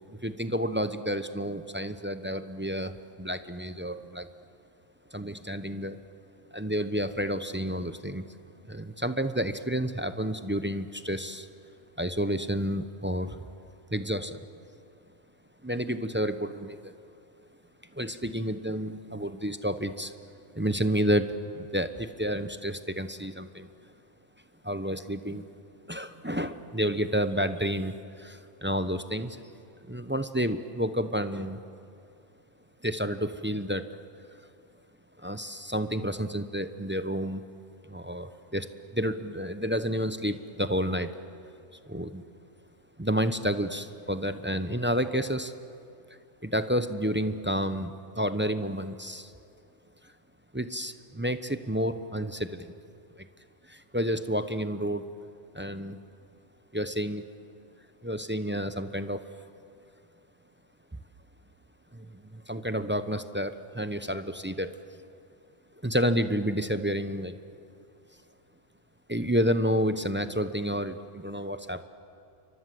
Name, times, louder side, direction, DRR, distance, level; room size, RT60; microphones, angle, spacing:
voice 1, 0.1-2.9 3.2-4.3 5.1-6.0 6.5-8.2 8.7-11.5 12.0-13.4 13.9-14.4 15.6-16.9 17.9-20.1 20.5-23.7 24.6-25.4 25.9-29.4 29.9-31.6 32.8-33.9 35.2-37.4 37.9-41.1 41.9-42.2 43.0-45.5 46.4-49.3 50.5-52.7 53.2-53.3 53.7-55.1 55.5-56.0 56.7-57.2 58.0-59.2 61.9-64.7 65.8-67.4 69.1-71.8, equal, 10° right, 10 dB, 0.7 m, -30 dB
28.5 x 24.5 x 7.8 m, 2.6 s
omnidirectional pair, 1.3 m